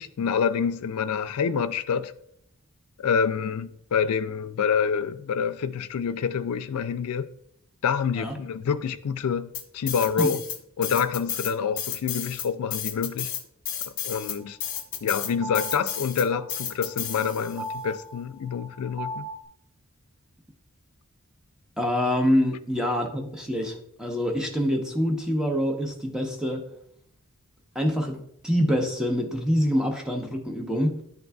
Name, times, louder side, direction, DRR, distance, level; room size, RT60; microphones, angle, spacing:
voice 1, 0.0-2.1 3.0-7.3 7.8-10.4 10.8-13.3 14.0-14.6 15.0-19.3, left 6 dB, 85° left, 0.4 m, -27 dB
sound 1, 9.5-10.6 10.8-17.6, left 9 dB, 55° left, 1.0 m, -32 dB
sound 2, 14.1-19.4, right 1 dB, 25° right, 1.6 m, -39 dB
voice 2, 21.8-26.6 27.7-31.0, equal, 5° right, 0.8 m, -25 dB
11.0 x 3.9 x 2.3 m
head